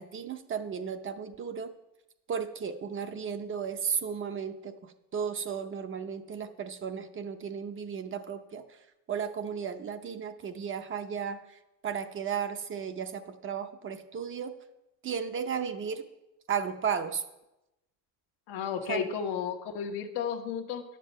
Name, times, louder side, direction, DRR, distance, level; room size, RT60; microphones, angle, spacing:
voice 1, 0.0-1.7 2.3-8.8 9.1-14.5 15.0-16.0 16.5-17.2 18.9-19.1, right 7 dB, 30° right, 8 dB, 0.6 m, -34 dB
voice 2, 18.5-20.8, left 8 dB, 80° left, 4 dB, 1.2 m, -33 dB
10.0 x 7.5 x 5.3 m, 0.94 s
cardioid pair, 135°, 39 cm